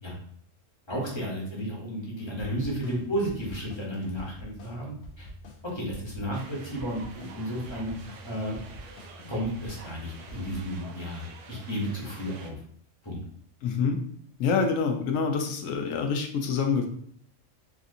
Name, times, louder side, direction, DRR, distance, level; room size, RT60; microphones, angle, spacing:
voice 1, 0.9-5.3 5.6-7.9 8.2-8.6 9.3-12.6 13.0-13.2, equal, 25° left, -4 dB, 0.9 m, -33 dB
sound 1, 2.2-10.8, equal, 65° left, 0.8 m, -46 dB
sound 2, 6.3-12.5, right 4 dB, 75° right, 0.9 m, -48 dB
voice 2, 13.6-14.0 14.4-16.9, left 5 dB, 85° left, 5 dB, 1.0 m, -26 dB
3.4 x 2.6 x 2.6 m, 0.63 s
omnidirectional pair, 1.3 m